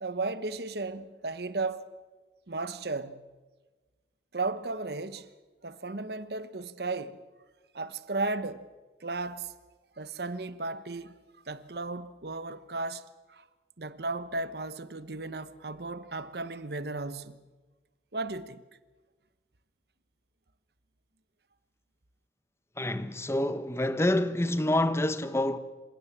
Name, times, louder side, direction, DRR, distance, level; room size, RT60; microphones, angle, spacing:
voice 1, 0.0-1.8 2.5-3.2 4.3-5.3 5.6-7.2 7.7-8.7 9.0-9.5 10.0-11.1 11.5-13.4 13.8-17.4 18.1-18.6, right 3 dB, 65° right, 1.1 m, -35 dB
voice 2, 22.8-25.6, left 1 dB, 15° left, 1.0 m, -27 dB
27.5 x 17.0 x 7.4 m
head